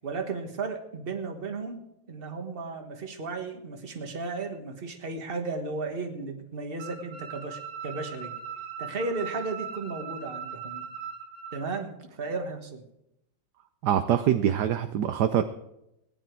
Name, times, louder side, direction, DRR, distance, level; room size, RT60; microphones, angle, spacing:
voice 1, 0.0-8.3 8.8-10.8 11.5-12.8, right 3 dB, 30° right, 5 dB, 1.4 m, -35 dB
sound 1, 6.8-11.6, right 7 dB, 90° right, 2.6 m, -39 dB
voice 2, 13.8-15.4, right 10 dB, 70° right, 9 dB, 1.0 m, -24 dB
18.0 x 10.0 x 4.6 m, 0.84 s
omnidirectional pair, 2.3 m